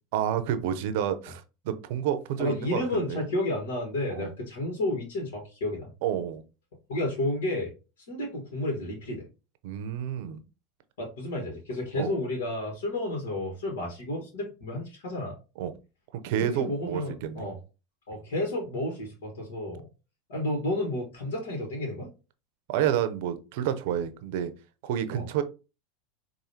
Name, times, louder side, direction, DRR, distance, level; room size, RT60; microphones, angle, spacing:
voice 1, 0.1-3.2 4.1-4.3 6.0-6.4 9.6-10.4 12.0-12.1 15.6-15.7 16.1-17.5 22.7-24.5 24.8-25.4, right 10 dB, 70° right, 10 dB, 0.6 m, -29 dB
voice 2, 2.4-5.9 6.9-7.7 8.1-9.3 11.0-15.4 16.4-17.5 18.1-19.9 20.3-22.1 25.1-25.2, left 1 dB, 80° left, 0 dB, 1.5 m, -31 dB
4.9 x 2.6 x 2.8 m, 0.31 s
hypercardioid pair, 95°, 0 cm